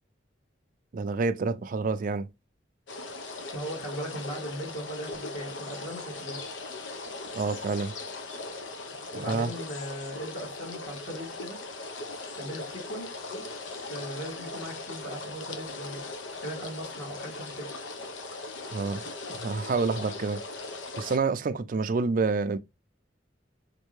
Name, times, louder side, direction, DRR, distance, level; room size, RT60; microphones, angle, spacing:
voice 1, 0.9-2.3 7.3-8.0 9.1-9.5 18.7-19.0 19.4-20.4 21.0-22.6, right 4 dB, 50° right, 0.4 m, -28 dB
sound 1, 2.9-21.2, left 3 dB, 85° left, 0.7 m, -39 dB
voice 2, 3.5-6.4 9.1-11.6 12.3-13.1 13.9-17.7, right 1 dB, 65° left, 2.3 m, -38 dB
4.4 x 2.6 x 3.0 m
head